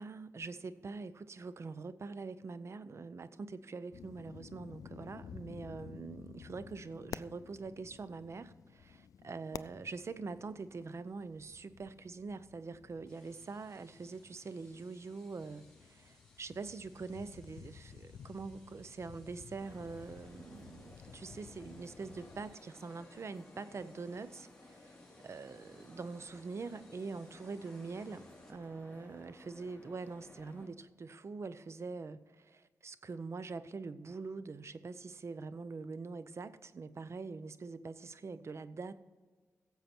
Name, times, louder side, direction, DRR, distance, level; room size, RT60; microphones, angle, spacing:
voice 1, 0.0-24.5 24.8-24.9 25.2-38.9, right 4 dB, 55° right, 0.7 m, -44 dB
sound 1, 3.9-22.6, left 8 dB, 90° left, 0.4 m, -53 dB
sound 2, 13.1-28.5, left 1 dB, 10° left, 3.1 m, -67 dB
sound 3, 19.6-30.7, left 2 dB, 25° left, 2.8 m, -57 dB
16.0 x 7.5 x 4.4 m
cardioid pair, 75°, 6 cm